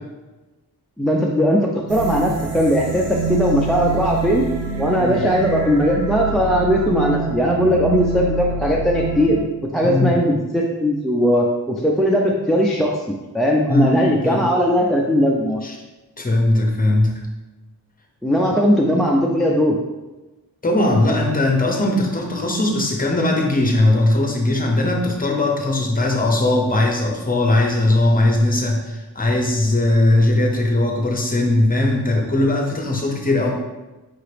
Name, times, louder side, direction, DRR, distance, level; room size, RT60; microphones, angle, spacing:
voice 1, 1.0-4.4 4.8-9.4 9.7-13.0 13.3-15.6 18.2-19.7, equal, ahead, -2 dB, 0.4 m, -18 dB
sound 1, 1.9-9.4, right 4 dB, 90° right, 0.8 m, -26 dB
voice 2, 9.8-10.2 13.7-14.5 15.6-15.8 16.2-17.2 20.6-33.5, left 2 dB, 20° left, 0 dB, 0.8 m, -19 dB
4.9 x 2.8 x 3.3 m, 1.1 s
wide cardioid pair, 105°, 39 cm